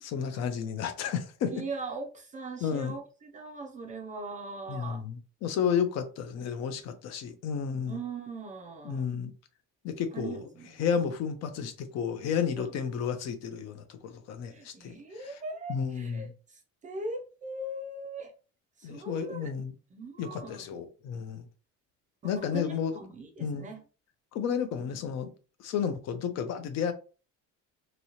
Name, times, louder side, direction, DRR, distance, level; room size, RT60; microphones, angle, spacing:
voice 1, 0.0-1.5 2.6-3.0 4.7-8.0 8.8-9.3 9.8-10.4 10.8-14.9 15.7-16.3 18.8-19.7 20.2-21.4 22.2-23.0 23.4-23.7 24.3-25.3 25.6-26.9, left 7 dB, 55° left, 0.5 m, -32 dB
voice 2, 1.5-5.0 7.9-9.1 10.1-10.8 12.6-12.7 14.5-18.3 18.8-19.5 19.9-20.8 22.2-23.8, right 2 dB, 25° right, 0.4 m, -40 dB
3.0 x 2.8 x 2.8 m
cardioid pair, 165°, 32 cm